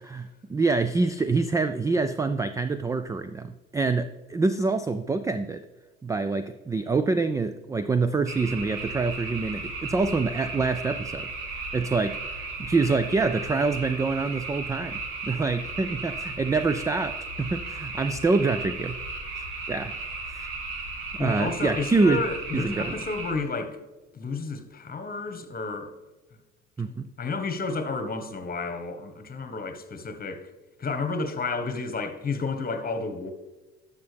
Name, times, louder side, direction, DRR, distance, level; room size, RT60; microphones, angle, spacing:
voice 1, 0.0-5.6 6.0-11.3 11.7-19.0 19.4-20.0 20.3-20.5 21.2-22.2 22.5-22.9 26.8-27.1, right 3 dB, 10° right, 0.3 m, -26 dB
sound 1, 8.3-23.3, right 3 dB, 65° right, 1.8 m, -35 dB
voice 2, 21.2-23.8 24.1-25.9 26.9-30.5 30.8-33.3, left 4 dB, 25° left, 1.3 m, -31 dB
12.5 x 5.6 x 3.4 m
hypercardioid pair, 65°, 34 cm